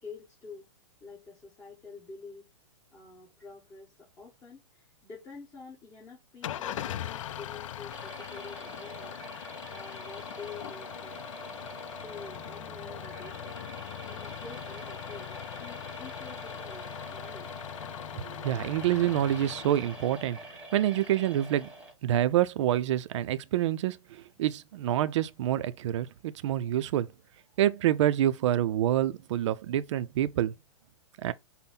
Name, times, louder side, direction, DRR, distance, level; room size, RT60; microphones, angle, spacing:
voice 1, 0.0-0.7 1.0-2.5 2.9-9.2 9.7-11.2 12.0-13.6 14.0-17.7, left 4 dB, 20° left, 1.7 m, -48 dB
Engine starting / Idling, 6.4-20.6, left 11 dB, 75° left, 0.4 m, -41 dB
sound 1, 7.9-21.9, right 2 dB, 5° right, 1.4 m, -46 dB
voice 2, 18.2-20.4 20.7-21.7 22.0-27.1 27.6-30.5 31.2-31.3, right 12 dB, 65° right, 0.4 m, -27 dB
5.4 x 2.1 x 4.0 m
hypercardioid pair, 135°, 16 cm